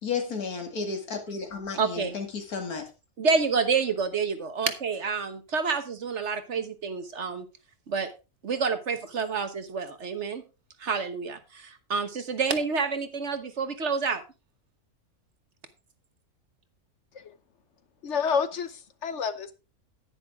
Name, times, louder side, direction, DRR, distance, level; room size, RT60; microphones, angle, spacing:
voice 1, 0.0-2.8, left 5 dB, 85° left, 2.6 m, -33 dB
voice 2, 1.8-2.1 3.2-7.5 7.9-8.1 8.4-10.4 10.8-14.2, right 5 dB, 55° right, 1.4 m, -28 dB
voice 3, 18.0-19.5, left 6 dB, 55° left, 1.0 m, -29 dB
10.0 x 9.9 x 3.6 m
omnidirectional pair, 1.5 m